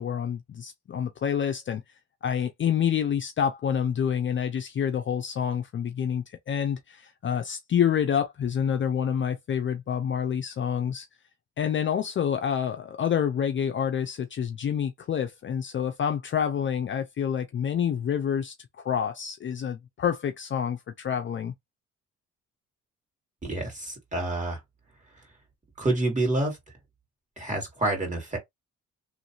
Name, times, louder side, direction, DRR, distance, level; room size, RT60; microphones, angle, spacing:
voice 1, 0.0-1.8 2.2-11.1 11.6-21.5, left 8 dB, 40° left, 0.5 m, -28 dB
voice 2, 23.4-24.6 25.8-26.6 27.4-28.4, right 2 dB, 25° right, 2.1 m, -28 dB
3.1 x 2.5 x 2.9 m
cardioid pair, 90°, 30 cm